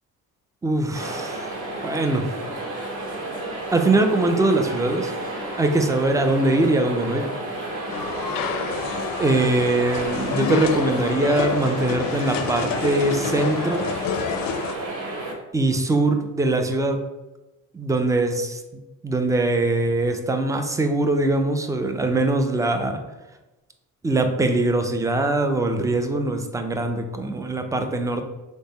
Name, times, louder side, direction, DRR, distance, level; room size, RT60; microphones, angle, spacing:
voice 1, 0.6-1.5 1.8-2.3 3.7-5.1 5.6-7.3 9.2-13.8 15.5-17.0 17.7-23.0 24.0-28.2, right 2 dB, 10° right, 6 dB, 0.4 m, -22 dB
sound 1, 0.9-15.3, right 2 dB, 70° right, 1.0 m, -31 dB
sound 2, 7.9-14.7, left 7 dB, 60° left, 0.5 m, -28 dB
3.4 x 2.1 x 4.0 m, 1.1 s
hypercardioid pair, 50°, 40 cm